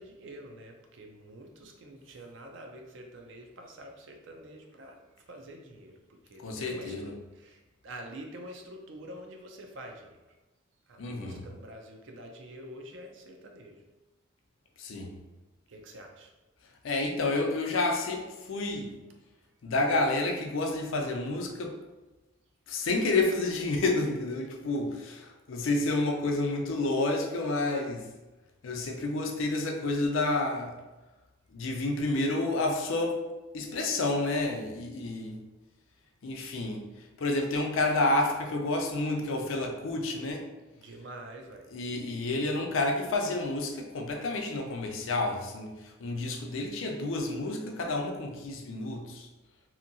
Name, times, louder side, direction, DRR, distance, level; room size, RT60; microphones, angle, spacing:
voice 1, 0.0-5.0 5.3-6.0 6.2-10.2 10.9-13.8 15.7-16.3 40.7-41.7, right 1 dB, 60° right, 2 dB, 0.4 m, -46 dB
voice 2, 6.4-7.1 11.0-11.4 14.8-15.1 16.8-18.9 19.6-21.8 22.7-28.1 28.6-30.7 31.5-33.2 33.5-35.4 36.2-36.9 37.2-40.5 41.7-49.3, left 2 dB, 70° left, 2 dB, 0.5 m, -30 dB
2.8 x 2.6 x 2.6 m, 1.1 s
head